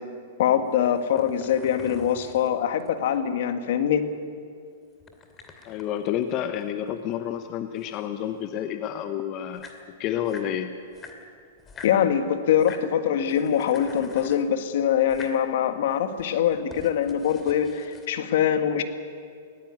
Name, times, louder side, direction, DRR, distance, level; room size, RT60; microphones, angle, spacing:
voice 1, 0.4-4.1 11.8-18.8, left 9 dB, 65° left, 8 dB, 1.7 m, -23 dB
sound 1, 0.7-3.2 5.0-7.1 7.4-8.6 9.2-9.3 9.4-10.5 10.9-12.0 12.5-12.9 13.2-14.5 15.0-15.4 16.0-18.1, left 4 dB, 20° left, 2.5 m, -46 dB
voice 2, 5.6-10.7, left 10 dB, 40° left, 9 dB, 1.0 m, -30 dB
19.0 x 17.0 x 9.6 m, 2.3 s
hypercardioid pair, 125°, 0 cm